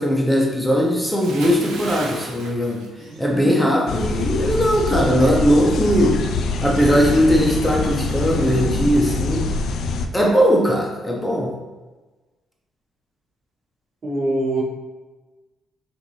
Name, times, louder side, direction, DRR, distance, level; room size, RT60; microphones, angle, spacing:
voice 1, 0.0-2.8 3.2-6.2 6.6-9.5 10.1-11.5, equal, 5° left, -2 dB, 0.8 m, -19 dB
Bathtub (filling or washing) / Splash splatter, 1.2-3.6 3.9-4.2, right 3 dB, 85° right, 0.6 m, -35 dB
sound 1, 3.0-9.1, equal, 70° right, 1.3 m, -38 dB
sound 2, 3.9-10.1, left 3 dB, 70° left, 0.4 m, -24 dB
voice 2, 14.0-14.6, right 2 dB, 45° right, -2 dB, 1.0 m, -22 dB
6.4 x 2.6 x 3.1 m, 1.2 s
cardioid pair, 90°, 0 cm